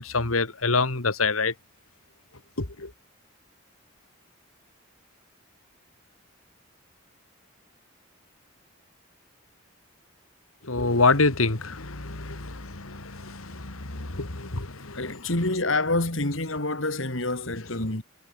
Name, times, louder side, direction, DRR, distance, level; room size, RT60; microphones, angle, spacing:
voice 1, 0.0-1.5 2.6-2.9 10.6-15.2, left 3 dB, 85° left, 2.3 m, -26 dB
voice 2, 14.9-18.0, left 2 dB, 65° left, 3.3 m, -27 dB
head